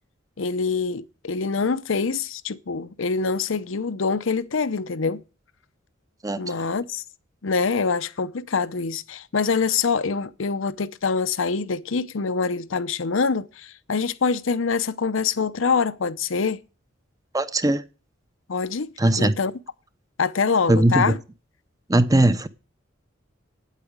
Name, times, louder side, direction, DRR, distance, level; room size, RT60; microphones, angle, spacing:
voice 1, 0.4-5.2 6.4-7.0 7.4-16.6 18.5-19.5 20.2-21.2, left 5 dB, 75° left, 0.7 m, -25 dB
voice 2, 17.3-17.8 19.0-19.3 20.7-21.1 21.9-22.5, right 1 dB, 20° right, 0.7 m, -19 dB
9.0 x 8.4 x 8.6 m
head